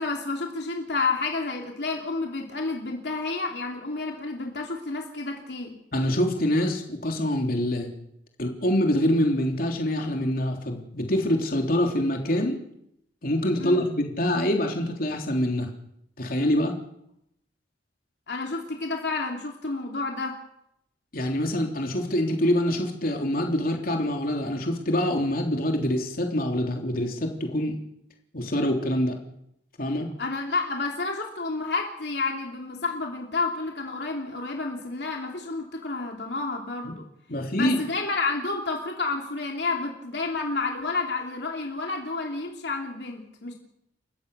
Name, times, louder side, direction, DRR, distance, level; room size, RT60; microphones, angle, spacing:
voice 1, 0.0-5.7 13.6-13.8 18.3-20.4 30.2-36.9 37.5-43.5, left 3 dB, 70° left, 1 dB, 3.0 m, -30 dB
voice 2, 5.9-7.9 8.4-12.6 13.2-15.7 16.2-16.7 21.1-27.8 28.3-29.1 29.8-30.1 37.3-37.8, left 1 dB, 55° left, 2 dB, 3.4 m, -25 dB
30.0 x 15.5 x 6.9 m, 0.78 s
head